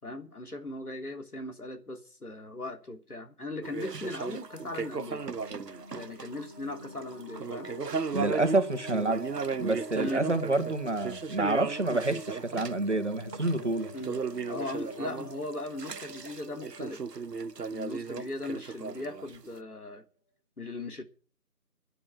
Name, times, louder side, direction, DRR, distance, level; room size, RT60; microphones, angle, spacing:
voice 1, 0.0-5.2 5.9-7.7 10.0-10.2 13.9-14.2 14.5-17.0 17.7-20.0 20.6-21.0, left 2 dB, 70° left, 3.2 m, -38 dB
sound 1, 3.6-6.5 6.8-19.5, right 5 dB, 85° right, 0.9 m, -36 dB
sound 2, 3.9-18.6, right 1 dB, 15° left, 4.0 m, -46 dB
voice 2, 8.1-9.3 9.6-13.9, right 2 dB, 45° right, 1.9 m, -28 dB
11.5 x 10.0 x 8.4 m
figure-of-eight pair, 170°, 47 cm